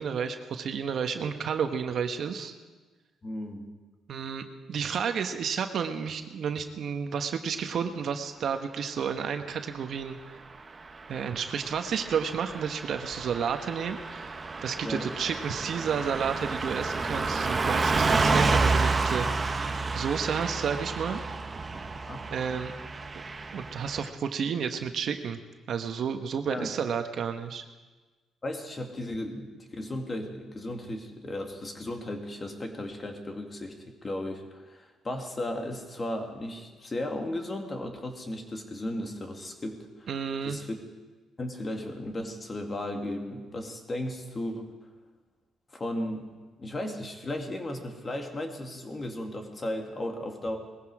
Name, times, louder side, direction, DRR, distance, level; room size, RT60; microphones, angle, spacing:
voice 1, 0.0-2.5 4.1-10.2 11.1-14.4 14.6-21.2 22.3-22.7 23.1-23.2 23.5-25.4 25.7-27.6 40.1-40.6, right 7 dB, 65° right, 7 dB, 1.2 m, -31 dB
voice 2, 3.2-3.7 14.8-15.1 22.0-22.3 26.5-26.7 28.4-40.1 40.4-40.7 41.4-44.7 45.7-46.3 46.6-50.6, left 1 dB, 30° left, 4 dB, 2.3 m, -35 dB
Car passing by / Truck, 11.1-24.1, right 3 dB, 30° right, 1.1 m, -30 dB
19.5 x 15.0 x 4.9 m, 1.3 s
cardioid pair, 90°, 0 cm